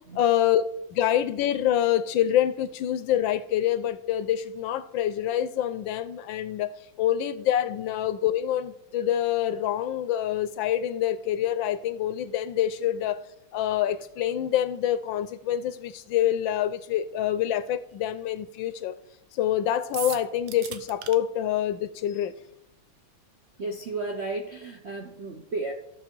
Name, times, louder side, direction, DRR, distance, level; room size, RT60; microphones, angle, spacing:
voice 1, 0.2-6.7 7.0-13.2 13.5-19.0 19.4-22.3, left 11 dB, 75° left, 1.2 m, -26 dB
sound 1, 19.9-21.2, right 10 dB, 80° right, 1.6 m, -36 dB
voice 2, 23.6-25.7, right 3 dB, 60° right, 0.7 m, -33 dB
13.5 x 6.6 x 4.5 m
omnidirectional pair, 2.3 m